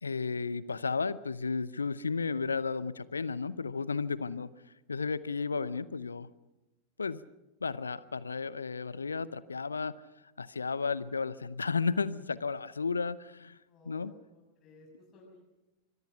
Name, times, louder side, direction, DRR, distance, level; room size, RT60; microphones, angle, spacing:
voice 1, 0.0-4.5 4.9-6.3 7.0-7.2 7.6-10.0 10.4-13.6 13.9-14.1, left 4 dB, 75° left, 18 dB, 0.7 m, -33 dB
voice 2, 13.7-15.5, left 2 dB, 30° left, -3 dB, 6.5 m, -57 dB
26.0 x 23.0 x 5.9 m, 1.0 s
figure-of-eight pair, 90°, 0 cm